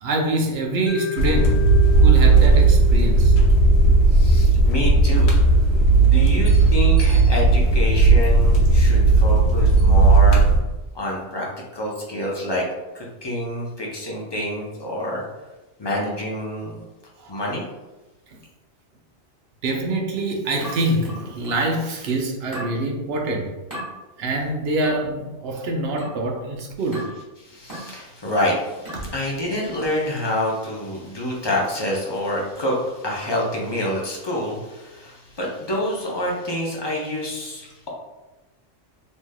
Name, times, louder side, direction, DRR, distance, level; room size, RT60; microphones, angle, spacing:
voice 1, 0.0-1.6 2.0-3.3 17.2-17.4 19.6-23.5 24.2-27.0 29.0-29.1, right 2 dB, 65° right, 1 dB, 0.8 m, -25 dB
Mallet percussion, 0.9-5.0, left 8 dB, 45° right, 1.0 m, -34 dB
sound 1, 1.2-10.6, right 3 dB, 70° left, 0.9 m, -15 dB
voice 2, 4.1-5.3 6.0-10.5 10.9-12.6 12.9-15.2 15.8-16.7 17.3-17.6 27.4-37.9, left 1 dB, 35° left, -3 dB, 0.4 m, -27 dB
sound 2, 20.6-21.7 22.5-22.8 23.7-23.9 24.8-25.1 26.0-26.3 26.9-27.2 27.7-28.0 28.8-29.1, equal, 15° right, 1.3 m, -35 dB
3.2 x 2.6 x 2.2 m, 1.1 s
omnidirectional pair, 1.2 m